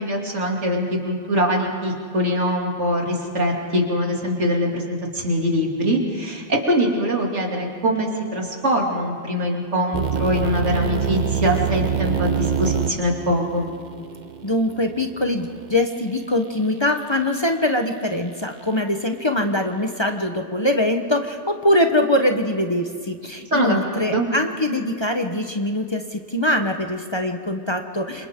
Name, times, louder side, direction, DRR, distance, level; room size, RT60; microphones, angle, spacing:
voice 1, 0.0-13.7 23.5-24.3, equal, 75° right, -1 dB, 3.1 m, -23 dB
sound 1, 9.9-15.9, right 7 dB, 45° right, 0.9 m, -26 dB
voice 2, 14.4-28.3, left 1 dB, 25° left, 4 dB, 1.0 m, -23 dB
29.0 x 26.0 x 3.7 m, 2.1 s
omnidirectional pair, 1.2 m